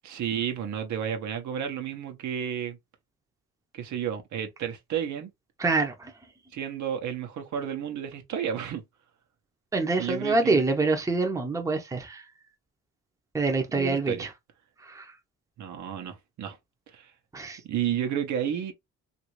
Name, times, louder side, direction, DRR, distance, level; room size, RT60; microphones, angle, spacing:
voice 1, 0.0-2.8 3.7-5.3 6.5-8.8 10.0-10.6 13.7-14.3 15.6-16.6 16.9-17.1 17.7-18.7, right 9 dB, 70° right, 0.9 m, -31 dB
voice 2, 5.6-6.1 9.7-12.2 13.3-14.3 14.8-15.1 17.3-17.6, right 3 dB, 10° right, 0.7 m, -26 dB
3.0 x 2.6 x 3.0 m
cardioid pair, 90°, 30 cm